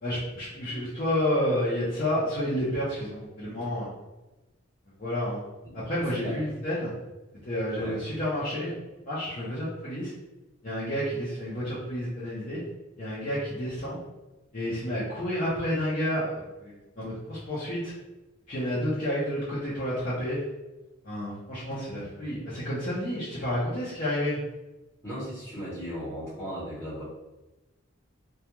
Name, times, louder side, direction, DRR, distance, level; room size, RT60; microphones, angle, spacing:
voice 1, 0.0-3.9 5.0-5.4 5.7-6.9 7.4-8.7 9.0-10.1 10.6-12.6 13.0-14.0 14.5-17.9 18.5-20.4 21.0-24.4, equal, 40° left, -10 dB, 0.6 m, -30 dB
voice 2, 25.0-27.0, equal, 10° left, -10 dB, 0.8 m, -36 dB
2.3 x 2.2 x 2.9 m, 1.1 s
head